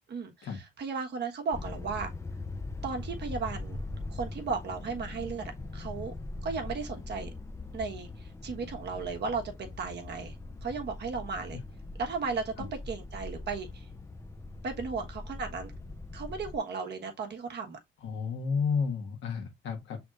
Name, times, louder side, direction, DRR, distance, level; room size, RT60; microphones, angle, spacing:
voice 1, 0.1-2.1 2.8-3.8 4.1-6.1 6.4-7.3 7.7-10.3 10.6-11.6 12.0-13.9 14.6-15.7 16.1-17.8, right 4 dB, 60° right, 1.2 m, -35 dB
sound 1, 1.5-16.6, left 2 dB, 15° left, 0.5 m, -41 dB
voice 2, 18.0-20.0, left 5 dB, 75° left, 1.3 m, -31 dB
6.1 x 3.5 x 2.4 m
cardioid pair, 90°, 20 cm